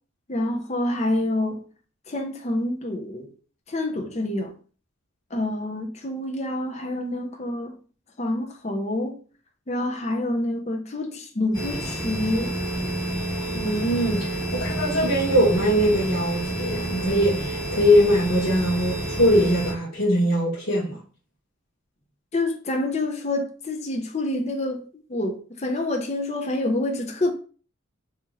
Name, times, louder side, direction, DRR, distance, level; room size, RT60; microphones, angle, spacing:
voice 1, 0.3-1.7 2.1-3.3 3.7-4.5 5.3-7.8 8.2-9.2 9.7-12.5 22.3-24.8 25.1-27.3, left 1 dB, 35° left, 0.5 m, -27 dB
sound 1, 11.5-19.7, right 1 dB, 15° left, 1.8 m, -29 dB
voice 2, 13.5-21.0, equal, 90° left, 1.2 m, -21 dB
2.9 x 2.8 x 3.7 m
head